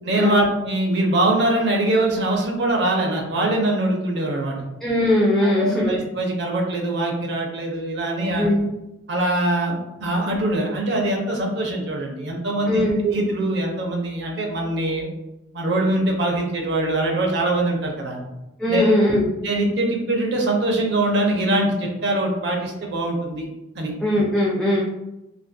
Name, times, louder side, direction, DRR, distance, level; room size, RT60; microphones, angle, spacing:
voice 1, 0.0-4.6 5.4-8.5 9.1-15.1 15.5-18.2 18.7-18.9 19.4-23.5 23.7-23.9, right 1 dB, 60° right, 0 dB, 0.6 m, -23 dB
voice 2, 4.8-6.0 8.4-8.6 12.7-13.0 18.6-19.3 24.0-24.8, left 1 dB, ahead, -7 dB, 0.3 m, -19 dB
2.6 x 2.4 x 2.2 m, 0.95 s
head